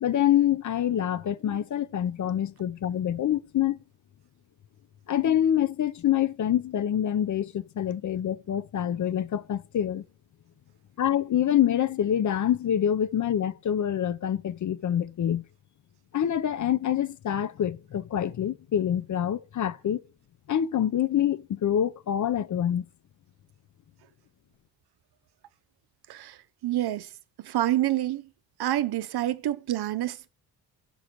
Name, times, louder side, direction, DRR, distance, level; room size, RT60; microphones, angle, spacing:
voice 1, 0.0-3.8 5.1-10.0 11.0-15.4 16.1-20.0 20.5-22.8, left 10 dB, 40° left, 0.5 m, -26 dB
voice 2, 26.1-27.1 27.4-28.3 28.6-30.3, right 13 dB, 55° right, 0.6 m, -28 dB
5.4 x 4.9 x 5.9 m
supercardioid pair, 45°, 47 cm